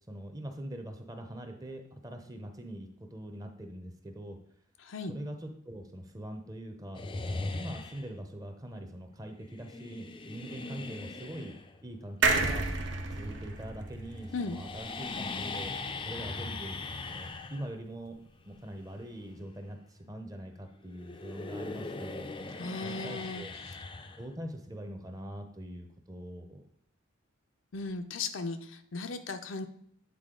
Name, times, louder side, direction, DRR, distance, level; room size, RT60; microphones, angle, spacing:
voice 1, 0.1-4.4 5.1-7.0 7.3-11.5 11.8-12.7 13.1-15.7 16.0-16.8 17.1-22.3 22.8-23.5 24.2-26.6, right 1 dB, 20° right, 5 dB, 0.6 m, -43 dB
voice 2, 4.8-5.1 14.3-14.6 22.6-23.8 27.7-29.7, left 3 dB, 75° left, 7 dB, 0.6 m, -37 dB
sound 1, 6.9-8.2 9.5-13.7 14.0-20.6 20.9-24.7, left 3 dB, 25° left, 0.4 m, -40 dB
sound 2, 12.2-15.7 16.1-16.2 16.4-16.5, right 3 dB, 65° right, 0.7 m, -31 dB
8.3 x 4.1 x 3.7 m, 0.67 s
head